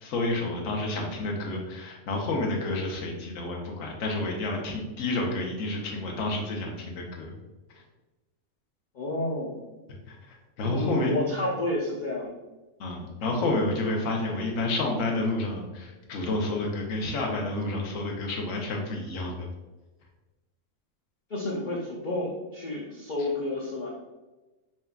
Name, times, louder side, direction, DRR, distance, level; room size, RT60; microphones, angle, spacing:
voice 1, 0.0-7.3 10.1-11.3 12.8-19.5, left 2 dB, 65° left, 0 dB, 1.1 m, -30 dB
voice 2, 8.9-9.6 10.6-12.4 21.3-23.9, left 1 dB, 50° left, -4 dB, 0.6 m, -30 dB
4.3 x 3.4 x 2.4 m, 1.1 s
omnidirectional pair, 1.5 m